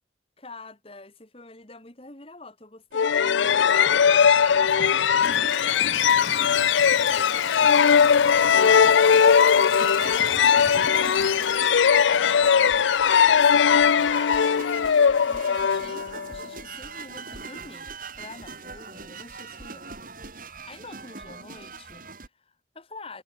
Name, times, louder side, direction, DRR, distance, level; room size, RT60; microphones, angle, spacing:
voice 1, 0.4-12.9 13.4-17.9 18.2-19.9 20.3-23.2, left 3 dB, 30° left, 2.3 m, -46 dB
sound 1, 2.9-16.4, left 7 dB, 80° left, 0.5 m, -19 dB
sound 2, 2.9-22.3, right 4 dB, 45° right, 4.7 m, -41 dB
Toilet flush / Trickle dribble, 4.4-4.5 5.1-12.9, left 5 dB, 50° left, 1.4 m, -37 dB
head